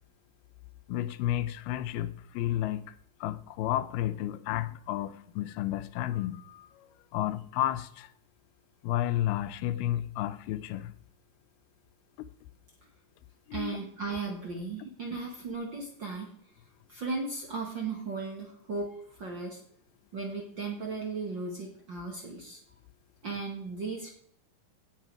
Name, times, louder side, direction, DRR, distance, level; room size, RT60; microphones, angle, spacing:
voice 1, 0.9-3.0 3.2-8.1 8.8-11.0 13.5-13.8, left 13 dB, 90° left, 2.6 m, -32 dB
voice 2, 13.5-16.3 16.9-19.6 20.1-22.6 23.2-24.1, right 4 dB, 45° right, 1.6 m, -36 dB
16.5 x 6.8 x 4.7 m
omnidirectional pair, 4.3 m